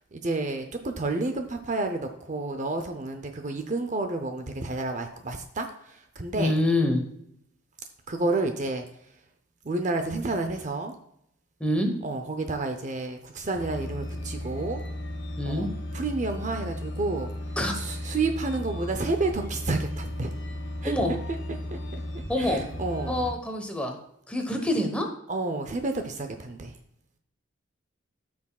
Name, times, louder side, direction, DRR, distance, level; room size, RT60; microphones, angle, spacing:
voice 1, 0.1-6.5 8.1-8.8 9.6-10.9 12.0-14.8 15.4-15.7 15.9-17.3 17.8-20.9 21.7-21.8 22.4-23.2 25.3-26.7, right 2 dB, 35° right, 6 dB, 0.6 m, -30 dB
voice 2, 6.4-7.0 11.6-11.9 15.4-15.7 17.6-17.7 20.8-21.1 22.3-22.6 23.1-24.0 24.3-25.1, left 1 dB, 5° left, 3 dB, 1.1 m, -26 dB
sound 1, 13.5-23.3, left 1 dB, 65° left, 1.8 m, -35 dB
14.0 x 6.0 x 2.3 m, 0.75 s
head